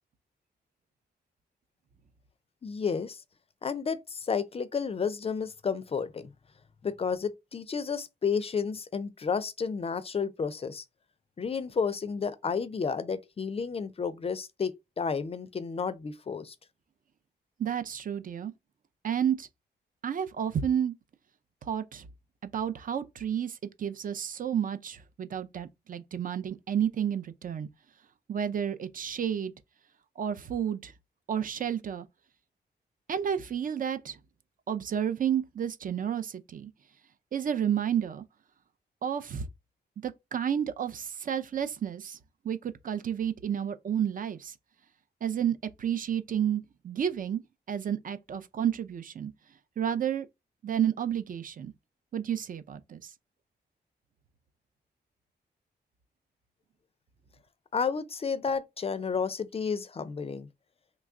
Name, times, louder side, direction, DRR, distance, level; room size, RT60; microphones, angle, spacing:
voice 1, 2.6-3.2 3.6-6.3 6.8-10.8 11.4-16.5 57.7-60.5, left 5 dB, 35° left, 0.4 m, -31 dB
voice 2, 17.6-18.5 19.0-19.5 20.0-20.9 21.7-22.1 22.4-27.7 28.3-29.5 30.2-30.9 31.3-32.1 33.1-34.2 34.7-36.7 37.3-38.2 39.0-39.5 40.0-42.2 42.4-44.5 45.2-47.4 47.7-49.3 49.8-50.3 50.6-51.7 52.1-53.1, right 9 dB, 50° right, 0.4 m, -31 dB
3.0 x 2.3 x 3.6 m
cardioid pair, 100°, 18 cm